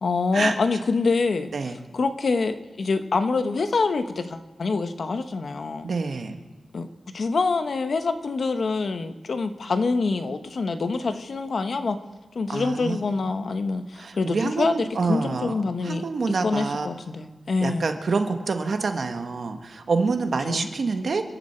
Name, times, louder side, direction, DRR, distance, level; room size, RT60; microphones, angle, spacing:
voice 1, 0.0-1.5 1.9-5.9 6.7-6.9 7.1-12.0 12.3-16.0 16.4-17.9 20.5-20.7, left 4 dB, 50° left, 8 dB, 0.9 m, -25 dB
voice 2, 5.8-6.3 12.5-13.0 13.9-15.6 15.8-16.9 17.6-21.4, right 4 dB, 55° right, 6 dB, 1.3 m, -27 dB
28.5 x 11.5 x 4.4 m, 1.2 s
wide cardioid pair, 160°, 0 cm